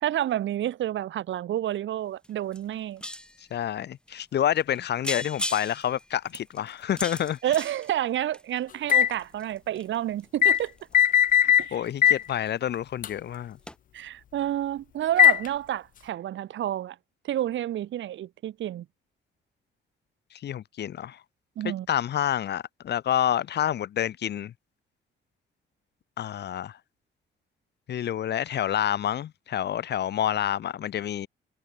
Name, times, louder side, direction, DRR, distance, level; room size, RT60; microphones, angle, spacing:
voice 1, 0.0-3.0 7.4-10.7 11.6-11.8 13.9-17.0 17.2-18.8 21.6-21.9, right 12 dB, 70° right, 1.6 m, -29 dB
sound 1, 2.2-2.3 2.5-3.5 4.1-4.2 4.6-4.8 5.0-8.6 9.1-12.5 12.7-13.1 13.3-13.4 13.7-13.8, left 1 dB, 5° left, 1.4 m, -38 dB
voice 2, 3.5-7.4 11.4-13.6 20.4-21.2 21.6-24.5 26.2-26.8 27.9-31.3, left 10 dB, 60° left, 0.9 m, -28 dB
sound 2, 8.9-9.1 10.4-10.6 10.9-11.7 12.0-12.2 13.0-13.1 15.2-15.5, left 10 dB, 45° left, 0.4 m, -18 dB
cardioid pair, 90°, 20 cm